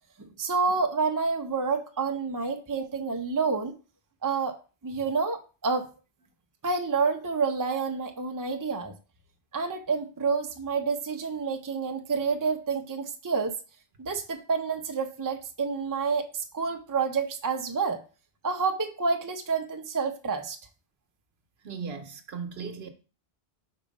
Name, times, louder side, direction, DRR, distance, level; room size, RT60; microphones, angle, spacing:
voice 1, 0.2-3.7 4.2-4.6 4.8-5.9 6.6-8.9 9.5-13.5 14.0-18.0 18.4-20.6, right 4 dB, 25° right, 0.6 m, -28 dB
voice 2, 21.6-22.9, right 5 dB, 75° right, 1.1 m, -37 dB
5.0 x 4.5 x 5.2 m
omnidirectional pair, 1.1 m